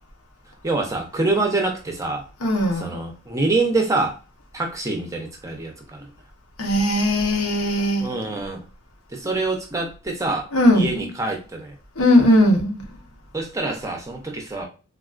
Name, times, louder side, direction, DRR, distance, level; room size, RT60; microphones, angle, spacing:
voice 1, 0.6-2.2 2.7-4.2 4.5-6.1 8.0-8.6 9.1-10.5 10.7-11.8 13.3-14.7, right 2 dB, 15° right, 0.5 m, -25 dB
voice 2, 2.4-3.0 6.6-8.1 10.5-10.9 12.0-12.8, left 1 dB, 75° left, 0.8 m, -18 dB
3.6 x 2.3 x 2.4 m
head